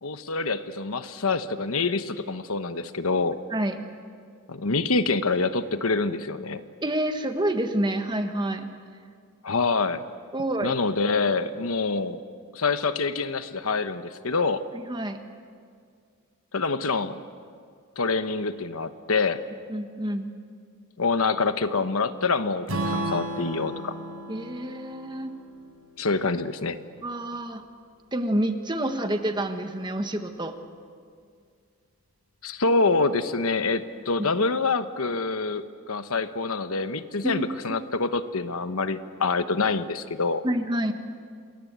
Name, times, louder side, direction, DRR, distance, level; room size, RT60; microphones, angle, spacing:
voice 1, 0.0-3.4 4.5-6.6 9.4-10.0 10.6-12.2 12.5-14.6 16.5-17.2 18.0-19.4 21.0-23.9 26.0-26.8 32.4-40.4, left 4 dB, 80° left, 10 dB, 1.1 m, -26 dB
voice 2, 6.8-8.7 10.3-10.8 14.9-15.2 19.7-20.3 24.3-25.3 27.0-27.6 28.1-30.5 37.2-37.5 40.4-40.9, right 1 dB, 20° right, 7 dB, 1.4 m, -28 dB
Strum, 22.7-26.9, right 1 dB, 80° right, 5.2 m, -34 dB
27.5 x 21.5 x 8.2 m, 2.1 s
head